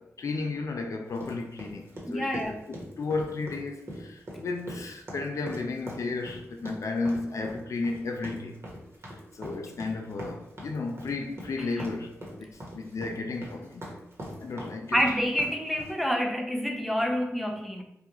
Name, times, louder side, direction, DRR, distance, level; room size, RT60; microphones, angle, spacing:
voice 1, 0.0-8.6 9.1-13.9 14.4-15.0, left 3 dB, 65° left, 0.4 m, -34 dB
sound 1, 1.2-16.0, equal, 50° right, 1.2 m, -42 dB
voice 2, 2.1-2.6 14.9-17.8, equal, ahead, 0.5 m, -27 dB
3.4 x 2.3 x 3.0 m
cardioid pair, 40°, 6 cm